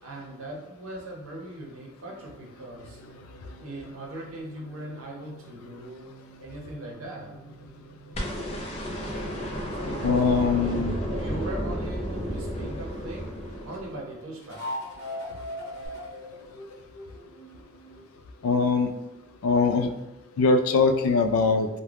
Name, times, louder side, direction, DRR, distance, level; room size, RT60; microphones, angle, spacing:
voice 1, 0.0-3.0 3.6-7.3 9.8-10.8 11.2-13.3 13.6-14.6, right 1 dB, 90° right, -1 dB, 0.6 m, -39 dB
sound 1, 2.0-12.2 14.4-18.1, equal, 60° left, 0.9 m, -43 dB
sound 2, 8.1-14.3 15.8-15.9, equal, 30° left, 0.5 m, -32 dB
voice 2, 10.0-10.9 18.4-18.9 19.4-19.9 20.4-21.7, left 4 dB, 90° left, 7 dB, 0.3 m, -22 dB
2.3 x 2.1 x 3.2 m, 0.98 s
head